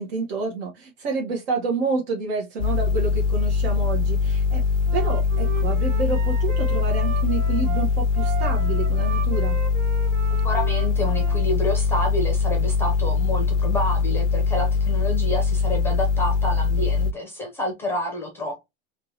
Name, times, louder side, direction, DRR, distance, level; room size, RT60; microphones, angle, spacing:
voice 1, 0.0-4.6 4.9-9.6, right 4 dB, 55° right, 1.2 m, -28 dB
sound 1, 2.6-17.1, left 5 dB, 75° left, 0.5 m, -22 dB
Wind instrument woodwind instrument, 4.8-11.5, right 5 dB, 85° right, 1.6 m, -36 dB
voice 2, 10.4-18.7, left 1 dB, 5° left, 0.7 m, -28 dB
3.4 x 3.0 x 2.8 m
supercardioid pair, 165°, 37 cm